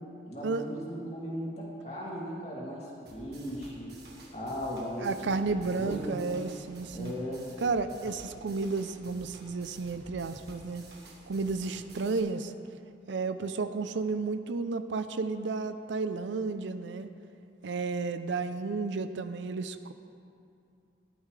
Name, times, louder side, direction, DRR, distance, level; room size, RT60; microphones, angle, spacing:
voice 1, 0.2-3.9 4.3-6.2 6.9-7.5, equal, 35° left, -5 dB, 2.5 m, -37 dB
sound 1, 3.1-12.2, right 1 dB, 55° right, 1.8 m, -51 dB
voice 2, 5.0-7.1 7.6-10.8 11.3-12.5 13.1-17.1 17.6-19.9, right 4 dB, 75° right, 10 dB, 0.5 m, -32 dB
14.5 x 12.0 x 3.3 m, 2.6 s
head